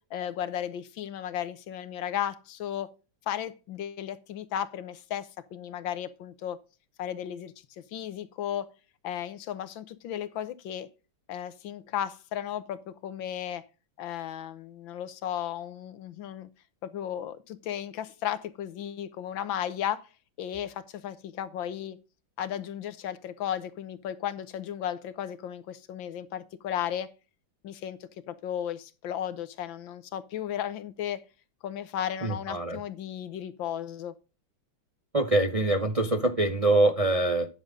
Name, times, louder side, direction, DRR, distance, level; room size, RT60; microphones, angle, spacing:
voice 1, 0.1-2.9 3.3-6.6 7.0-8.7 9.0-10.9 11.3-13.6 14.0-16.5 16.8-20.0 20.4-22.0 22.4-27.1 27.6-31.2 31.6-34.1, left 10 dB, 85° left, 1.7 m, -35 dB
voice 2, 32.2-32.8 35.1-37.5, right 2 dB, 40° right, 0.5 m, -24 dB
10.5 x 6.7 x 3.7 m
omnidirectional pair, 2.0 m